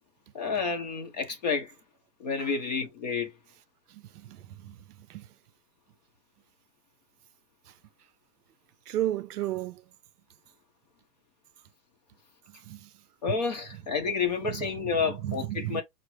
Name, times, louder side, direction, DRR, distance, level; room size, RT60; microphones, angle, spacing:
voice 1, 0.3-1.7 2.2-3.3 13.2-15.8, left 5 dB, 25° left, 0.7 m, -30 dB
voice 2, 3.9-5.3 7.7-7.8 8.9-9.8 12.5-13.0 14.4-15.8, right 13 dB, 70° right, 0.6 m, -35 dB
5.9 x 2.1 x 3.1 m
hypercardioid pair, 165°, 48 cm